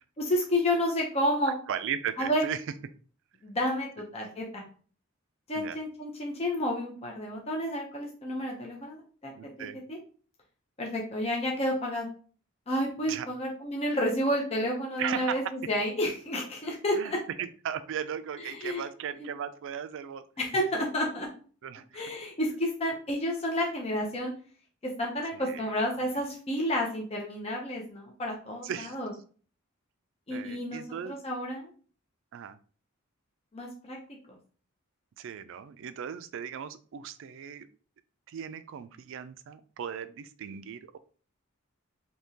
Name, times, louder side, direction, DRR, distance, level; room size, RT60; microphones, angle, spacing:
voice 1, 0.2-1.5 2.2-2.4 3.4-4.6 5.5-9.3 9.9-10.0 10.8-12.1 12.7-17.2 18.4-18.8 19.2-19.3 20.4-21.3 21.9-24.3 25.0-29.1 30.3-31.7 33.5-34.0 34.3-34.4, left 1 dB, 30° left, -1 dB, 0.6 m, -30 dB
voice 2, 1.7-2.6 5.6-5.8 9.3-9.8 13.1-13.3 15.0-15.5 17.0-17.1 17.4-20.2 21.6-22.1 25.3-25.8 28.6-29.0 30.3-31.2 32.3-32.6 35.2-37.7 38.3-41.0, right 8 dB, 65° right, 12 dB, 0.3 m, -37 dB
3.6 x 2.8 x 2.7 m, 0.42 s
head